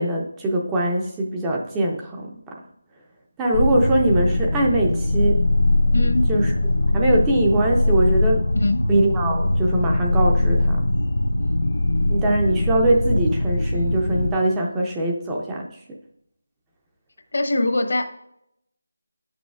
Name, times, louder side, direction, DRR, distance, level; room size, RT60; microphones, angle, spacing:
voice 1, 0.0-2.6 3.4-5.4 6.3-6.5 6.9-8.5 8.9-10.8 12.1-16.0, right 1 dB, 10° right, -1 dB, 0.5 m, -22 dB
sound 1, 3.5-14.3, left 1 dB, 75° left, 0.5 m, -21 dB
voice 2, 5.9-6.3 8.5-8.8 17.3-18.0, left 2 dB, 60° left, 6 dB, 1.0 m, -22 dB
9.3 x 6.1 x 2.4 m, 0.75 s
figure-of-eight pair, 170°, 0 cm